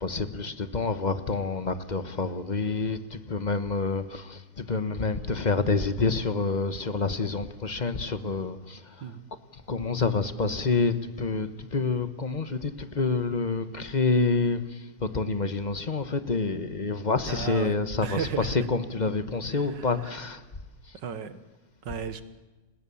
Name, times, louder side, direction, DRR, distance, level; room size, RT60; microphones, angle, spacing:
voice 1, 0.0-9.1 9.5-20.4, left 4 dB, 30° left, 1.0 m, -28 dB
voice 2, 17.3-17.7 18.0-18.6 19.5-19.9 20.9-21.4 21.8-22.2, right 7 dB, 60° right, 1.9 m, -34 dB
30.0 x 20.0 x 7.1 m
omnidirectional pair, 2.3 m